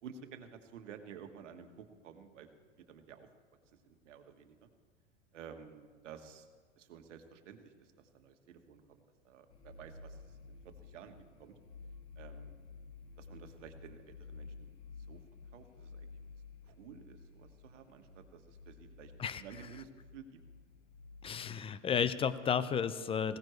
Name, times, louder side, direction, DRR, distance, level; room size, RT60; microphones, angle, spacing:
voice 1, 0.0-2.5 2.9-3.3 3.8-4.7 5.3-6.5 6.8-10.2 10.5-11.5 12.2-12.6 13.2-14.7 15.1-15.2 15.5-16.1 16.6-19.1 19.4-20.4, right 7 dB, 70° right, 6 dB, 1.6 m, -52 dB
sound 1, 9.5-21.2, left 4 dB, 60° left, 2.0 m, -53 dB
voice 2, 21.2-23.4, left 7 dB, 15° left, 15 dB, 0.5 m, -32 dB
19.5 x 17.0 x 3.2 m, 1.5 s
hypercardioid pair, 100°, 37 cm